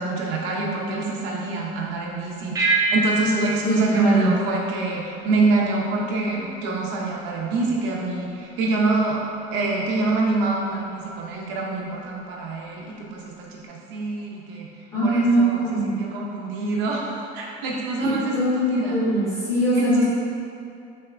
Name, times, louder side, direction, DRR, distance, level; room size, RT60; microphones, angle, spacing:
voice 1, 0.0-2.5 2.9-9.2 9.5-14.7 15.0-19.0 19.7-20.0, right 3 dB, 65° right, -2 dB, 0.6 m, -26 dB
sound 1, 2.5-5.3, right 3 dB, 15° right, 0.4 m, -26 dB
voice 2, 3.6-4.3 14.9-16.0 18.0-20.0, right 1 dB, 15° left, -10 dB, 1.1 m, -21 dB
5.4 x 2.8 x 2.5 m, 2.6 s
cardioid pair, 170°, 20 cm